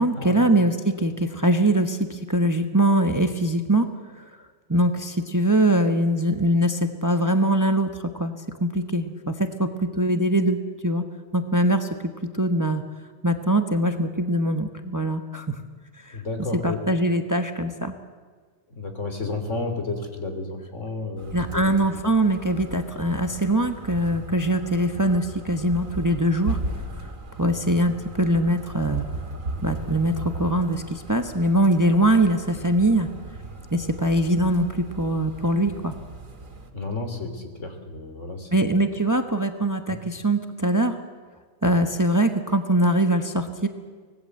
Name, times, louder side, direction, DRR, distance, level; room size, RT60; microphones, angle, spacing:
voice 1, 0.0-3.9 4.2-4.3 4.7-8.3 8.6-11.0 11.3-11.9 12.3-12.8 13.2-15.5 16.0-16.2 16.5-17.9 21.3-26.6 27.4-29.0 29.6-33.1 33.7-35.9 38.5-41.0 41.6-43.7, right 1 dB, 15° right, 6 dB, 1.2 m, -22 dB
voice 2, 16.1-16.8 18.7-21.7 36.7-38.8 39.9-40.0, left 3 dB, 65° left, 6 dB, 3.5 m, -32 dB
sound 1, 21.2-36.7, right 2 dB, 85° right, 2.5 m, -37 dB
25.0 x 19.0 x 7.8 m, 1.5 s
omnidirectional pair, 1.4 m